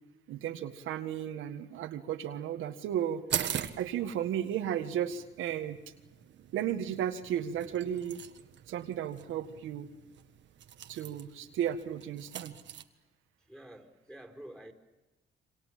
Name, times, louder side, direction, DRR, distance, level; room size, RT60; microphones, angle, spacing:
voice 1, 0.3-3.3 3.8-5.8 6.5-8.2 8.7-9.9 10.9-12.5, right 10 dB, 85° right, 6 dB, 1.8 m, -34 dB
sound 1, 3.3-12.8, right 9 dB, 65° right, 1.6 m, -42 dB
voice 2, 13.5-14.7, right 1 dB, ahead, 5 dB, 4.3 m, -48 dB
27.5 x 25.5 x 7.6 m, 1.1 s
cardioid pair, 90°, 20 cm